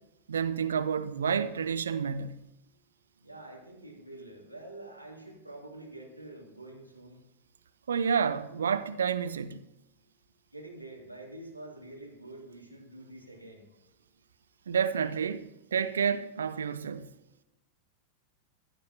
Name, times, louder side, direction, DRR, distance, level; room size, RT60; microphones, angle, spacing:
voice 1, 0.3-2.4 7.9-9.6 14.7-17.1, right 7 dB, 70° right, 0.5 m, -29 dB
voice 2, 3.2-7.2 10.5-13.7, right 2 dB, 90° right, 2.6 m, -47 dB
15.5 x 11.0 x 2.8 m
figure-of-eight pair, 90°, 0 cm